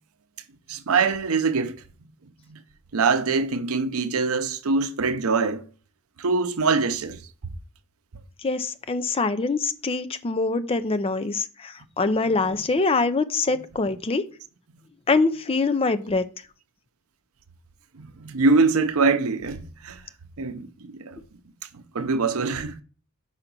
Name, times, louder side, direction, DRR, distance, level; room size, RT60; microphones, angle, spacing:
voice 1, 0.7-1.8 2.5-2.6 2.9-5.6 6.2-7.2 17.9-20.0 20.4-21.2 21.7-22.7, right 4 dB, 85° right, 0.6 m, -23 dB
voice 2, 8.4-14.2 15.1-16.2, left 3 dB, 25° left, 0.5 m, -24 dB
5.7 x 3.9 x 5.9 m
head